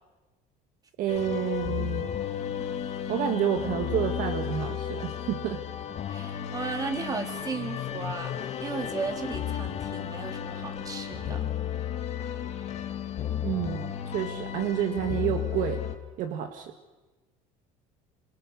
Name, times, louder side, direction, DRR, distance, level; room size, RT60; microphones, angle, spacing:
voice 1, 1.0-2.1 3.1-5.6 13.4-15.8 16.2-16.7, right 10 dB, 60° right, 6 dB, 1.8 m, -29 dB
sound 1, 1.1-16.0, left 9 dB, 45° left, 2.4 m, -33 dB
voice 2, 6.1-11.4, right 4 dB, 25° right, 4 dB, 4.0 m, -35 dB
28.0 x 27.5 x 6.5 m, 1.2 s
cardioid pair, 140°, 16 cm